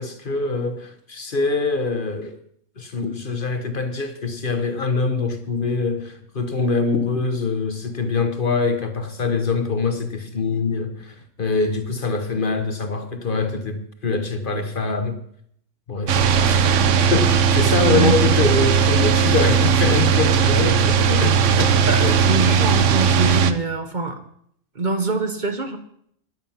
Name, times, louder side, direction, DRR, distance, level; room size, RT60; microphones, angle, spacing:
voice 1, 0.0-2.4 2.8-15.2 15.9-22.2, left 4 dB, 45° left, 1.1 m, -24 dB
sound 1, 16.1-23.5, right 6 dB, 75° right, 1.1 m, -17 dB
voice 2, 17.8-18.2 21.9-24.2 24.7-25.8, right 3 dB, 40° right, 1.2 m, -24 dB
13.0 x 11.0 x 5.7 m
omnidirectional pair, 1.3 m